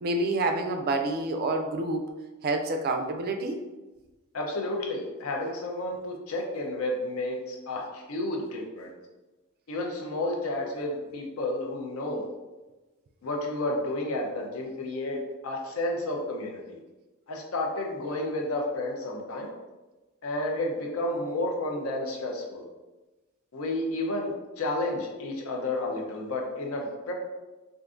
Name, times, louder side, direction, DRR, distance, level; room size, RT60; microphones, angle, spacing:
voice 1, 0.0-2.1 2.4-3.6, right 2 dB, 45° right, 4 dB, 0.3 m, -28 dB
voice 2, 4.3-8.9 9.7-12.3 13.2-16.8 17.3-19.5 20.2-22.6 23.5-27.1, left 1 dB, 75° left, 0 dB, 0.5 m, -31 dB
3.6 x 2.5 x 2.4 m, 1.1 s
head